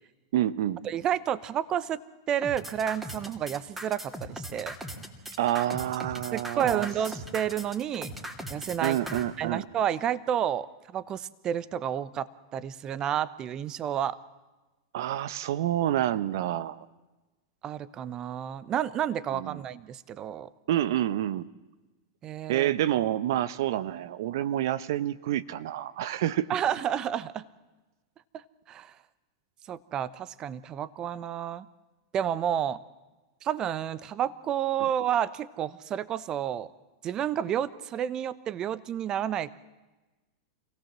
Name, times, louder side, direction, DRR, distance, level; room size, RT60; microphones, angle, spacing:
voice 1, 0.3-0.8 5.4-6.9 8.8-9.6 14.9-16.8 19.3-19.6 20.7-21.4 22.5-26.5, right 12 dB, 65° right, 17 dB, 0.8 m, -28 dB
voice 2, 0.8-2.0 2.3-4.7 6.3-8.1 8.5-9.0 9.4-10.7 10.9-14.2 17.6-20.5 22.2-22.7 26.5-27.5 28.3-28.9 29.7-31.7 32.1-32.8 33.4-36.7 37.0-39.5, right 9 dB, 35° right, 17 dB, 0.8 m, -30 dB
sound 1, 2.4-9.2, right 1 dB, 10° right, 3.0 m, -39 dB
26.5 x 17.0 x 7.5 m, 1.1 s
hypercardioid pair, 105°, 2 cm